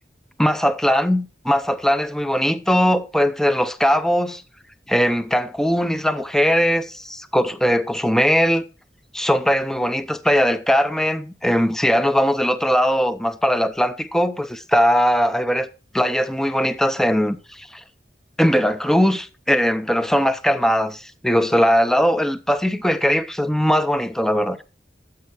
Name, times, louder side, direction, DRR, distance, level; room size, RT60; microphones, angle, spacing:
voice 1, 0.4-4.4 4.9-8.6 9.1-15.7 15.9-17.8 18.4-24.6, equal, 5° left, 0.6 m, -20 dB
12.5 x 8.3 x 4.5 m
head